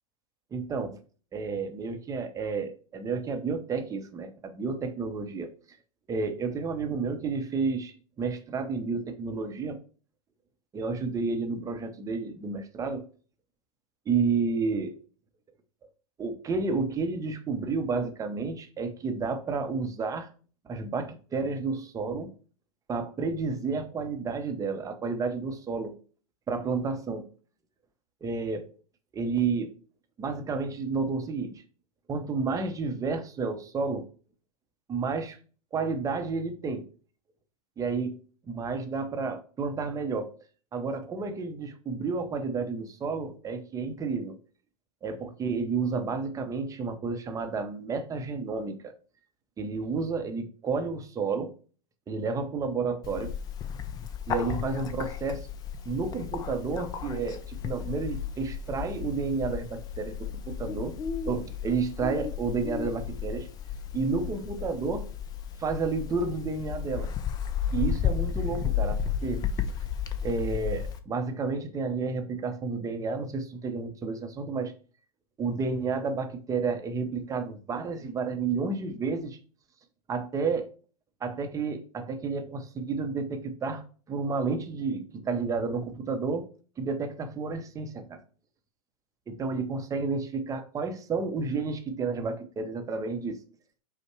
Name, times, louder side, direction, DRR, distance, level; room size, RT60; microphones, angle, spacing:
voice 1, 0.5-1.0 1.3-5.5 6.1-9.8 10.7-13.0 14.1-15.0 16.2-20.3 20.6-22.3 22.9-25.9 26.5-27.3 28.2-28.7 29.1-29.7 30.2-31.6 32.1-34.1 34.9-35.4 35.7-36.9 37.8-40.3 40.7-44.4 45.0-48.9 49.6-51.5 52.1-53.3 54.3-55.5 55.9-61.0 61.3-63.5 63.9-65.1 65.6-67.1 67.7-69.5 70.2-74.7 75.4-79.4 80.1-80.7 81.2-86.5 86.8-88.2 89.3-93.4, right 4 dB, 15° right, 0.6 m, -31 dB
Bird, 53.0-71.0, left 8 dB, 20° left, 0.4 m, -33 dB
5.2 x 2.1 x 4.6 m
hypercardioid pair, 100°, 19 cm